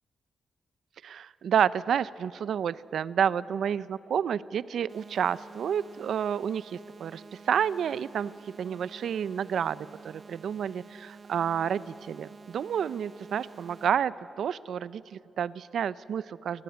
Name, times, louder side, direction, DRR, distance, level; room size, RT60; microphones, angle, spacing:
voice 1, 1.0-8.3 8.6-16.6, right 8 dB, 75° right, 18 dB, 0.5 m, -30 dB
sound 1, 4.9-13.9, right 5 dB, 45° right, 0.9 m, -50 dB
24.5 x 19.0 x 9.3 m, 2.8 s
cardioid pair, 95°, 0 cm